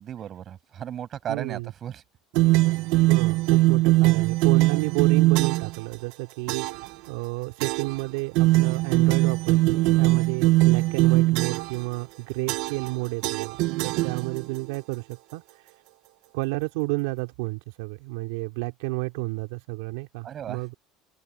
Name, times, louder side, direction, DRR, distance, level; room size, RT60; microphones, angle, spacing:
voice 1, 0.0-2.0 20.2-20.7, right 9 dB, 35° right, 7.2 m, -35 dB
voice 2, 1.3-1.7 3.1-15.7 16.3-20.7, right 23 dB, 85° right, 3.7 m, -31 dB
sound 1, 2.4-5.8 6.5-6.9 7.6-8.0 8.4-11.8 12.5-12.9 13.2-14.6, right 20 dB, 70° right, 0.8 m, -21 dB
open air
cardioid pair, 135°, 0 cm